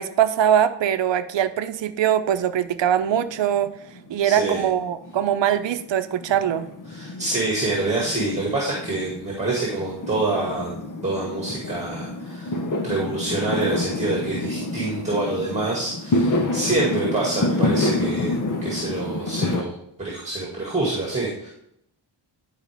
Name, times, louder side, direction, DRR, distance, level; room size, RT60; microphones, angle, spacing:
voice 1, 0.0-3.7 4.1-6.7, right 10 dB, 85° right, 11 dB, 0.7 m, -22 dB
Fireworks, 3.2-4.1 4.4-19.6, left 2 dB, 45° left, 1.0 m, -28 dB
voice 2, 4.2-4.6 6.9-10.7 11.0-12.6 12.8-18.3 18.6-21.5, right 2 dB, 15° right, -3 dB, 2.0 m, -26 dB
11.5 x 5.0 x 3.4 m, 0.76 s
wide cardioid pair, 140°, 43 cm